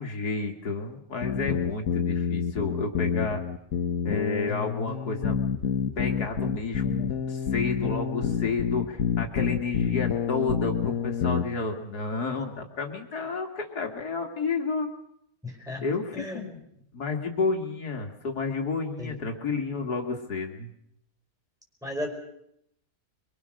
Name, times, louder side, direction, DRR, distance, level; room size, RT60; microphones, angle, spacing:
voice 1, 0.0-3.4 4.0-5.4 6.0-14.9 15.8-16.6 16.9-20.7, left 4 dB, 80° left, 3 dB, 2.6 m, -31 dB
sound 1, 1.2-11.4, left 7 dB, 65° left, 1.5 m, -28 dB
voice 2, 15.4-15.8 16.1-16.4 19.0-19.1 21.8-22.1, left 1 dB, ahead, 1 dB, 5.1 m, -34 dB
24.0 x 23.5 x 6.4 m, 0.78 s
omnidirectional pair, 1.7 m